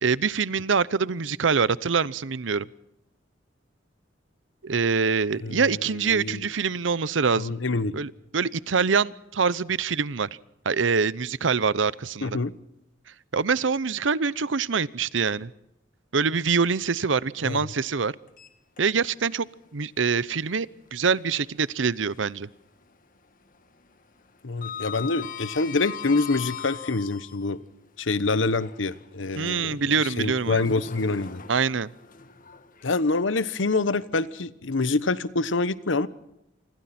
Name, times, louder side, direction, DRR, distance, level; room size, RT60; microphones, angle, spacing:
voice 1, 0.0-2.7 4.6-7.6 7.9-10.3 10.7-12.4 13.3-15.5 16.1-18.1 18.8-19.5 19.7-22.5 29.4-30.7 31.5-31.9, right 5 dB, 80° right, 0.8 m, -25 dB
voice 2, 5.4-5.7 6.1-6.4 7.4-8.0 12.2-12.5 17.4-17.7 24.4-27.6 28.0-31.4 32.8-36.1, left 3 dB, 90° left, 1.1 m, -26 dB
Sliding door, 18.3-19.3 19.6-19.8 21.5-22.5 22.8-23.2 23.4-27.5 28.2-33.4, left 7 dB, 45° left, 1.8 m, -41 dB
28.0 x 25.5 x 4.3 m
head